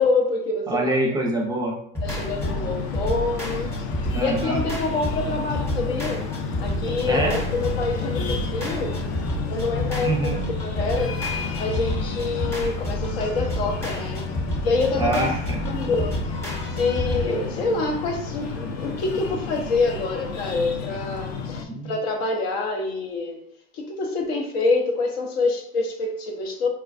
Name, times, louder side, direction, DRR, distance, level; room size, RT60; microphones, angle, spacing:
voice 1, 0.0-1.1 2.0-3.7 4.2-6.2 6.6-9.0 9.5-11.2 11.6-14.3 14.6-15.3 15.7-16.2 16.8-23.4 23.7-26.7, left 3 dB, 70° left, 3 dB, 0.8 m, -26 dB
voice 2, 0.7-1.8 4.0-4.6 7.0-7.4 10.0-10.4 15.0-15.6 21.7-21.9, right 2 dB, 15° right, 1 dB, 0.5 m, -25 dB
sound 1, 1.9-17.3, equal, 10° left, 1.0 m, -30 dB
Breathing, 2.0-21.6, left 4 dB, 50° left, 0.5 m, -31 dB
4.4 x 2.2 x 2.4 m, 0.67 s
supercardioid pair, 115°, 31 cm